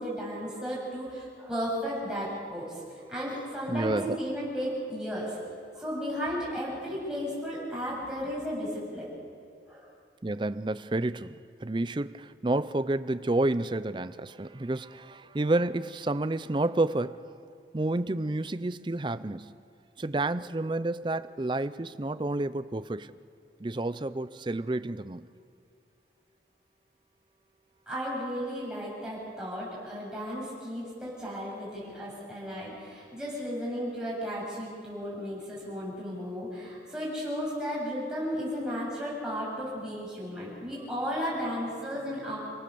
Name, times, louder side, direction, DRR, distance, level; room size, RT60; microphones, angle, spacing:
voice 1, 0.0-2.8 3.1-5.4 5.7-9.1 9.7-9.9 27.9-42.4, equal, 5° right, 7.6 m, -34 dB
voice 2, 3.7-4.2 10.2-11.3 11.6-17.2 17.7-19.5 20.0-23.1 23.6-25.3, right 2 dB, 25° right, 0.5 m, -30 dB
30.0 x 18.5 x 7.0 m
head